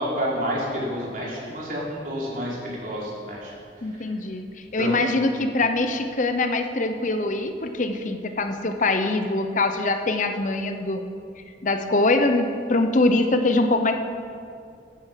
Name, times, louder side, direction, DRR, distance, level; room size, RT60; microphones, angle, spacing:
voice 1, 0.0-3.5 4.8-5.4, equal, 50° right, -5 dB, 3.8 m, -29 dB
voice 2, 3.8-4.5 4.7-11.1 11.6-13.9, left 2 dB, 45° left, 7 dB, 0.7 m, -23 dB
15.0 x 9.3 x 5.8 m, 2.4 s
head